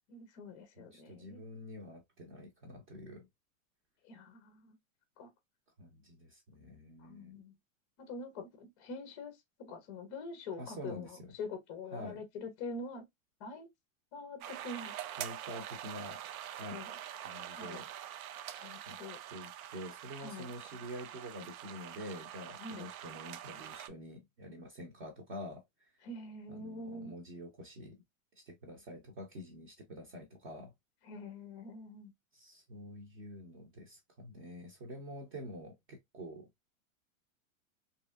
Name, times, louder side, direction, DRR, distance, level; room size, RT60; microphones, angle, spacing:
voice 1, 0.1-1.4 4.0-4.8 5.2-5.3 7.0-7.5 8.0-13.0 13.4-13.7 14.1-14.9 16.7-16.9 17.5-17.8 18.6-19.2 20.2-20.5 22.6-22.9 26.0-27.1 31.1-32.1, left 3 dB, 25° left, 0.4 m, -45 dB
voice 2, 0.8-3.3 5.8-7.4 10.6-11.3 11.9-12.2 15.2-16.2 16.5-16.8 17.2-17.9 18.9-19.0 19.3-26.0 26.5-28.0 28.5-30.7 32.3-36.5, equal, 35° right, 0.8 m, -47 dB
sound 1, 14.4-23.9, right 11 dB, 85° right, 0.5 m, -45 dB
3.0 x 2.7 x 2.3 m
supercardioid pair, 165°, 41 cm